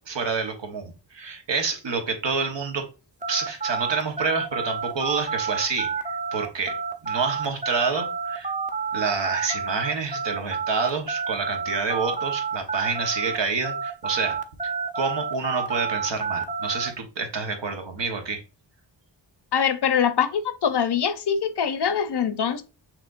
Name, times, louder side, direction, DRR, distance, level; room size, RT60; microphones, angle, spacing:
voice 1, 0.0-2.9 3.3-6.8 7.0-8.5 8.9-14.4 14.9-18.4, right 4 dB, 75° right, 1.1 m, -28 dB
sound 1, 3.2-13.4 13.6-16.9, right 6 dB, 20° right, 0.5 m, -29 dB
voice 2, 19.5-22.6, left 7 dB, 60° left, 0.7 m, -23 dB
5.9 x 2.9 x 2.5 m
wide cardioid pair, 75°, 45 cm